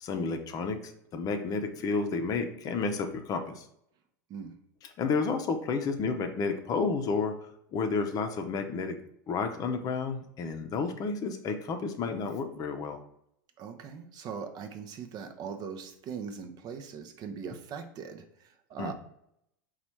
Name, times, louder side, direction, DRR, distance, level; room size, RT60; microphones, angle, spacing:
voice 1, 0.0-3.7 5.0-7.3 7.7-9.0 9.3-13.0 18.8-18.9, left 4 dB, 35° left, 6 dB, 0.6 m, -31 dB
voice 2, 13.6-18.9, right 6 dB, 40° right, 7 dB, 0.6 m, -40 dB
4.0 x 2.4 x 4.4 m, 0.74 s
hypercardioid pair, 95°, 10 cm